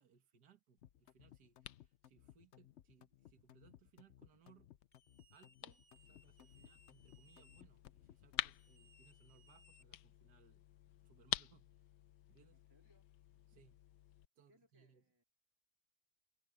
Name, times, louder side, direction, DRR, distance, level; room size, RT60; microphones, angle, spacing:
voice 1, 0.0-4.7 5.3-11.8 12.3-12.6 13.5-13.8 14.4-15.1, right 7 dB, 70° right, 2.2 m, -69 dB
sound 1, 0.8-14.3, left 14 dB, 85° left, 1.2 m, -50 dB
sound 2, 0.8-8.6, left 11 dB, 60° left, 0.7 m, -62 dB
sound 3, 4.9-7.6 8.5-10.3, equal, 30° left, 3.5 m, -69 dB
voice 2, 12.5-13.1 14.5-15.2, equal, 15° right, 3.4 m, -74 dB
omnidirectional pair, 1.8 m